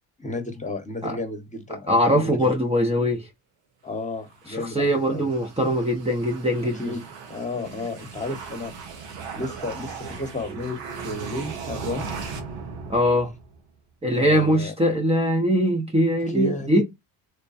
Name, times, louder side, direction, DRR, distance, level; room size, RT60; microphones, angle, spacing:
voice 1, 0.2-2.5 3.8-5.3 6.8-8.7 9.3-12.1 14.0-14.7 16.3-16.8, left 2 dB, 15° left, 1.2 m, -32 dB
voice 2, 1.7-3.3 4.5-6.8 12.9-13.3 14.0-16.8, equal, 15° right, 0.8 m, -22 dB
sound 1, 4.3-13.7, right 5 dB, 80° right, 1.2 m, -38 dB
3.5 x 2.2 x 4.1 m
supercardioid pair, 85°, 42 cm